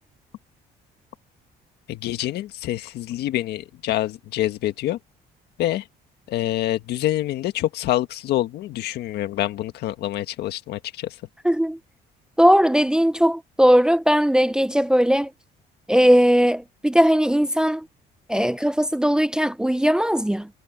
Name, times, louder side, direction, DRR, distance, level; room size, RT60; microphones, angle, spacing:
voice 1, 1.9-5.0 5.6-5.8 6.3-11.1, left 14 dB, 75° left, 1.6 m, -26 dB
voice 2, 11.4-11.8 12.4-15.3 15.9-17.8 18.3-20.5, equal, 5° right, 0.6 m, -18 dB
cardioid pair, 110°, 17 cm